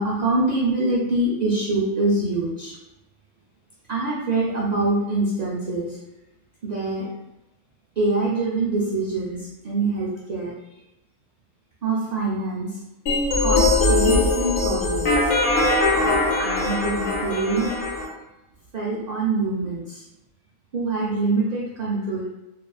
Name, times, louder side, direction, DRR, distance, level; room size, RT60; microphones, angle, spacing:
voice 1, 0.0-2.8 3.9-6.0 6.6-7.1 8.0-10.5 11.8-12.8 13.4-15.3 16.4-17.7 18.7-20.0 20.7-22.3, right 2 dB, 85° right, -5 dB, 0.3 m, -24 dB
sound 1, 13.1-18.1, left 2 dB, 80° left, 1.0 m, -21 dB
2.7 x 2.4 x 2.3 m, 0.94 s
omnidirectional pair, 1.3 m